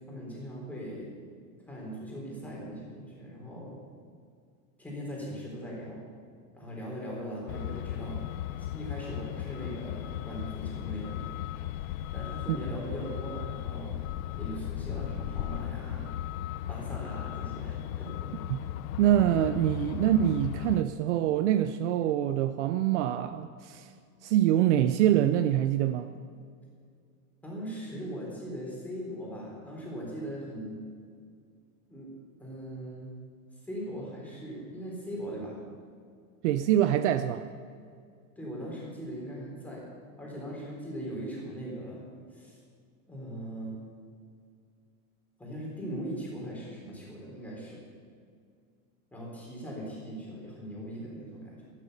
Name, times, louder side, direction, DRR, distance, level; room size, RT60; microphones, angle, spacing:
voice 1, 0.1-1.1 1.7-3.8 4.8-6.0 6.5-8.3 8.6-11.4 12.1-13.9 14.4-16.0 16.7-18.1 27.4-30.8 31.9-32.1 32.4-33.1 33.6-35.6 38.4-39.9 40.2-42.0 42.3-42.6 43.1-43.8 45.4-47.8 49.1-51.7, equal, 5° left, -4 dB, 3.7 m, -40 dB
Truck, 7.5-20.8, left 12 dB, 75° left, 0.6 m, -36 dB
voice 2, 19.0-23.9 24.2-26.1 36.4-37.4, right 11 dB, 55° right, 11 dB, 0.6 m, -25 dB
13.0 x 12.5 x 6.6 m, 2.2 s
supercardioid pair, 165°, 42 cm